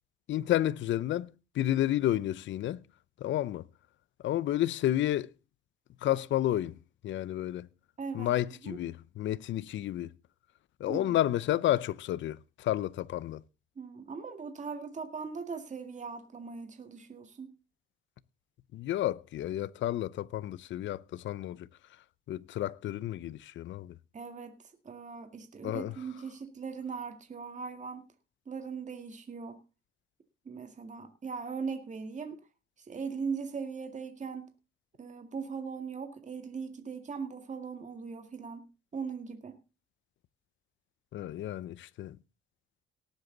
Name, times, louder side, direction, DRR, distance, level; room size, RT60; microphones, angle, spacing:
voice 1, 0.3-2.8 3.2-3.7 4.2-5.3 6.0-6.8 7.0-7.7 8.1-10.1 10.8-13.4 18.7-21.7 22.3-24.0 25.6-25.9 41.1-42.2, left 13 dB, 70° left, 0.7 m, -31 dB
voice 2, 8.0-8.4 8.6-8.8 10.9-11.2 13.8-17.6 24.1-28.1 28.5-29.6 30.5-32.4 32.8-34.5 35.0-39.6, right 5 dB, 35° right, 2.0 m, -40 dB
18.5 x 8.1 x 3.9 m
cardioid pair, 90°, 20 cm